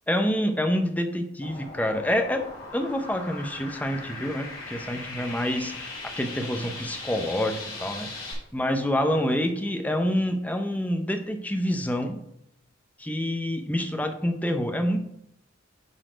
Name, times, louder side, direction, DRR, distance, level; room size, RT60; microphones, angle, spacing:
voice 1, 0.1-2.5 2.7-8.1 8.5-12.2 13.0-15.0, equal, 10° left, 5 dB, 0.7 m, -27 dB
sound 1, 1.4-8.3, left 2 dB, 90° left, 3.2 m, -39 dB
9.0 x 4.1 x 5.0 m, 0.77 s
head